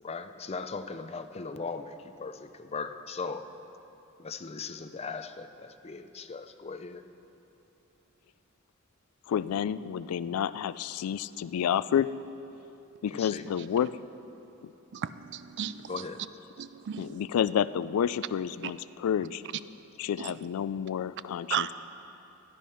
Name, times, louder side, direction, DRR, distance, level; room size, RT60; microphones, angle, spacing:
voice 1, 0.0-3.5 4.2-7.0 13.1-13.5 15.9-16.2, left 4 dB, 30° left, 0.5 m, -38 dB
voice 2, 9.3-12.1 13.0-14.0 14.6-14.7 17.0-19.4 20.0-21.7, left 9 dB, 85° left, 0.3 m, -29 dB
voice 3, 14.9-15.9 16.6-17.3 20.2-20.3 21.5-21.7, right 9 dB, 55° right, 0.4 m, -34 dB
13.0 x 10.5 x 5.6 m
head